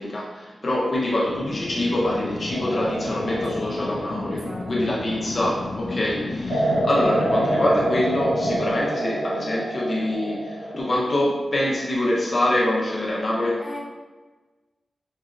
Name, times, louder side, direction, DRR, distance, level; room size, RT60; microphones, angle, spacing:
voice 1, 0.0-13.6, left 1 dB, 45° left, -4 dB, 0.8 m, -25 dB
sound 1, 1.2-8.8, left 3 dB, 70° left, 0.3 m, -33 dB
sound 2, 2.5-5.5 6.5-10.8, right 1 dB, 60° right, 1.2 m, -27 dB
voice 2, 4.3-4.8 13.6-13.8, equal, 20° right, -5 dB, 1.3 m, -37 dB
5.3 x 2.7 x 2.4 m, 1.3 s
wide cardioid pair, 90°, 0 cm